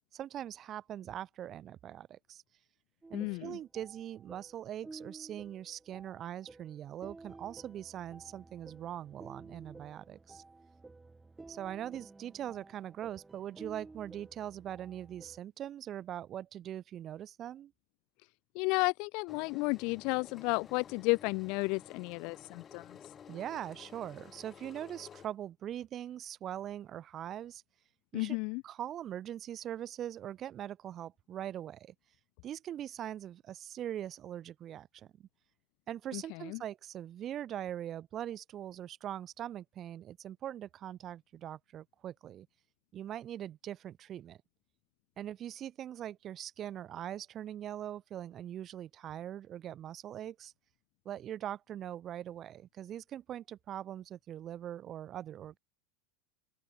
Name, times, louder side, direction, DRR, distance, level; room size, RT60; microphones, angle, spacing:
voice 1, 0.1-2.4 3.1-10.4 11.5-17.7 23.3-27.6 28.1-28.4 28.6-31.9 32.4-35.3 35.9-42.5 42.9-44.4 45.2-50.5 51.0-55.6, right 11 dB, 35° right, 1.7 m, -42 dB
sound 1, 3.0-15.4, right 3 dB, 10° right, 6.7 m, -53 dB
voice 2, 3.1-3.6 18.5-23.0 28.1-28.6 36.1-36.6, left 31 dB, 60° left, 0.6 m, -33 dB
Engine, 19.3-25.3, left 8 dB, 30° left, 3.2 m, -53 dB
open air
supercardioid pair, 110°, 0 cm